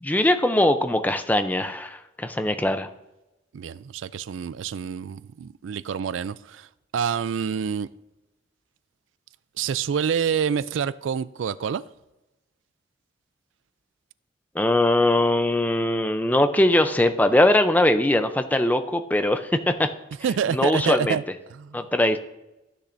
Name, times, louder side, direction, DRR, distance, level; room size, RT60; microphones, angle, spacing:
voice 1, 0.0-2.9 14.5-19.9 20.5-21.2 21.7-22.2, left 1 dB, 10° left, 0.5 m, -21 dB
voice 2, 3.5-6.7 6.9-7.9 9.6-11.8 20.2-21.2 21.5-21.8, right 7 dB, 85° right, 0.4 m, -27 dB
14.5 x 10.0 x 2.6 m
head